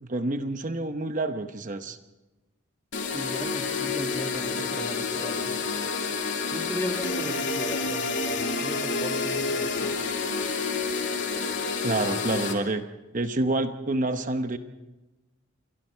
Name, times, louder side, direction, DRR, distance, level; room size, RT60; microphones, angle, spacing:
voice 1, 0.0-2.0 11.8-12.9 13.1-14.6, right 2 dB, 40° right, 8 dB, 0.9 m, -28 dB
sound 1, 2.9-12.5, left 4 dB, 60° left, 3.1 m, -29 dB
voice 2, 3.0-5.6 6.5-10.0, equal, 10° left, 4 dB, 1.8 m, -36 dB
28.5 x 23.5 x 4.6 m, 1.1 s
head